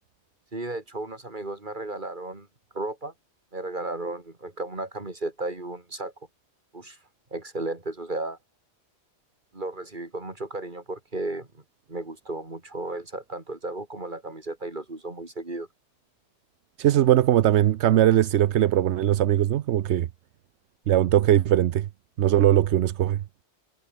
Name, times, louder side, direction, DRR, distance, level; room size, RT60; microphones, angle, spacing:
voice 1, 0.5-2.5 2.7-3.1 3.5-6.1 6.7-7.0 7.3-8.4 9.5-11.6 11.9-15.7, right 2 dB, 45° right, 3.8 m, -34 dB
voice 2, 16.8-20.1 20.9-21.9 22.2-23.2, right 12 dB, 80° right, 0.9 m, -20 dB
omnidirectional pair, 1.1 m